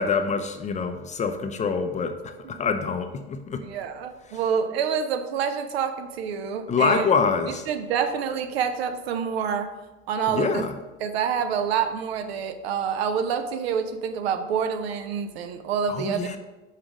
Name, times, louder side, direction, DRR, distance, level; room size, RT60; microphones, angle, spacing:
voice 1, 0.0-2.1 2.5-3.6 6.7-7.6 10.3-10.7 15.9-16.4, left 5 dB, 20° left, 7 dB, 0.5 m, -25 dB
voice 2, 3.6-7.1 7.5-9.7 10.1-10.6 11.0-16.4, right 7 dB, 65° right, 8 dB, 0.7 m, -27 dB
5.6 x 4.8 x 5.0 m, 1.1 s
figure-of-eight pair, 70°, 33 cm